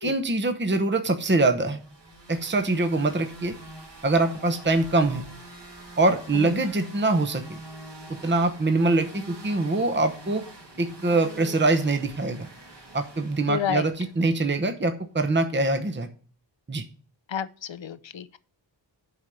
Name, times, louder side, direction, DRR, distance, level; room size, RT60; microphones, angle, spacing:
voice 1, 0.0-1.8 2.3-3.5 4.0-5.2 6.0-7.4 8.2-10.4 10.8-12.5 12.9-16.1 16.7-16.8, right 2 dB, 25° right, 0.9 m, -24 dB
sound 1, 1.5-14.5, right 2 dB, 65° right, 3.1 m, -45 dB
voice 2, 6.3-6.6 13.5-13.9 17.3-18.4, left 8 dB, 75° left, 0.8 m, -30 dB
8.1 x 5.4 x 7.4 m
wide cardioid pair, 65°, 46 cm